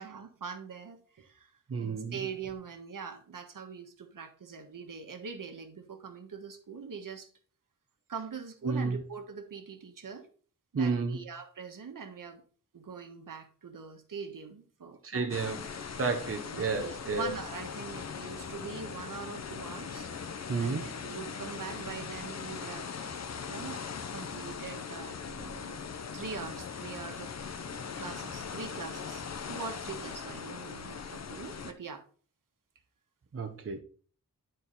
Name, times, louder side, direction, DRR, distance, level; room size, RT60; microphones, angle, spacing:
voice 1, 0.0-1.5 1.8-7.3 8.1-10.3 10.7-12.4 12.7-15.3 16.7-20.1 20.6-22.9 23.5-23.8 24.1-25.8 26.1-27.3 27.7-32.0, right 6 dB, 70° right, 1.4 m, -43 dB
voice 2, 1.7-2.1 8.6-9.0 10.7-11.2 15.0-15.6 16.0-17.3 20.5-20.8 33.3-33.8, right 4 dB, 40° right, 0.9 m, -31 dB
sound 1, 15.3-31.7, left 6 dB, 50° left, 0.8 m, -40 dB
11.0 x 4.5 x 4.1 m
wide cardioid pair, 110°, 33 cm